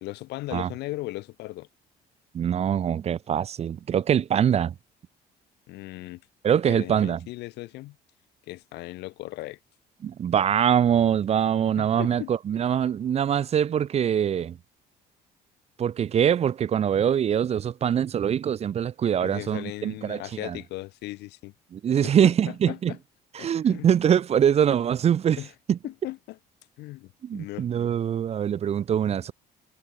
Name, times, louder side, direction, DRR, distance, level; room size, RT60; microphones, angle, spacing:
voice 1, 0.0-1.7 5.7-6.2 6.7-8.0 8.5-9.6 11.8-12.3 19.2-21.5 22.0-23.0 23.4-23.9 25.4-25.5 25.8-26.4 26.8-27.7, left 19 dB, 80° left, 0.7 m, -37 dB
voice 2, 2.3-4.7 6.4-7.2 10.0-14.6 15.8-20.6 21.7-22.9 23.3-25.4 25.7-25.8 27.2-29.3, right 9 dB, 40° right, 0.5 m, -23 dB
cardioid pair, 110°, 17 cm